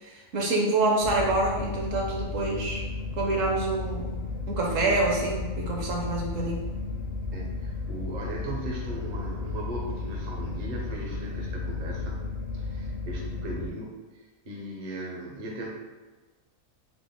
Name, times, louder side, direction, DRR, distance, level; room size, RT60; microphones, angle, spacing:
voice 1, 0.0-2.8 3.1-4.2 4.5-6.7, right 2 dB, 65° right, -1 dB, 1.0 m, -27 dB
sound 1, 1.0-13.7, left 3 dB, 60° left, 0.7 m, -34 dB
voice 2, 7.3-12.2 12.5-15.7, right 1 dB, 50° right, -2 dB, 0.6 m, -38 dB
4.0 x 2.1 x 3.5 m, 1.3 s
omnidirectional pair, 1.5 m